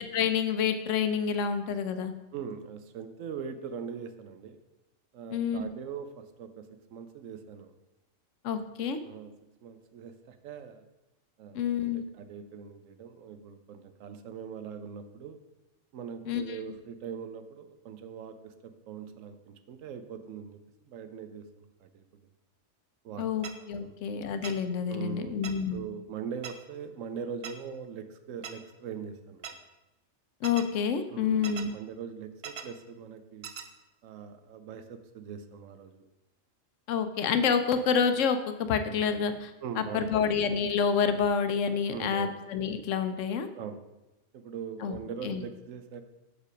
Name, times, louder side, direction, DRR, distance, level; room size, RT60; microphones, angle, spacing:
voice 1, 0.0-2.1 5.3-5.7 8.4-9.0 11.5-12.0 16.3-16.4 23.2-25.8 30.4-31.7 36.9-43.5 44.8-45.0 45.2-45.4, left 6 dB, 75° left, 9 dB, 1.0 m, -28 dB
voice 2, 2.3-4.6 5.1-7.7 9.0-9.3 9.6-10.9 11.4-15.4 15.9-22.0 23.0-23.5 23.8-24.0 24.9-29.5 31.1-33.5 34.0-36.0 39.6-40.4 41.9-42.4 43.6-43.8 44.3-46.0, right 7 dB, 80° right, 9 dB, 1.0 m, -41 dB
sound 1, 23.4-23.5 24.4-24.5 25.4-25.5 26.4-26.5 27.4-27.5 28.4-28.5 29.4-29.5 30.4-30.6 31.4-31.6 32.4-32.6 33.4-33.6, right 7 dB, 55° right, 0.8 m, -39 dB
6.5 x 5.1 x 5.0 m, 0.98 s
omnidirectional pair, 1.4 m